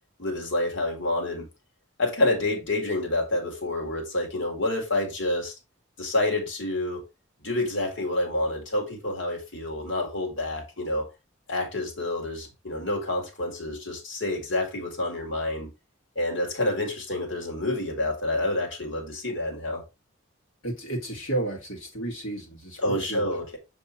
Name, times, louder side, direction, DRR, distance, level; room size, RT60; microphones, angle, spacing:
voice 1, 0.2-1.5 2.0-5.5 6.0-7.0 7.4-11.1 11.5-15.7 16.2-19.8 22.8-23.6, left 2 dB, 65° left, 2.1 m, -28 dB
voice 2, 20.6-23.4, right 2 dB, 80° left, 2.0 m, -32 dB
7.2 x 3.5 x 4.0 m
head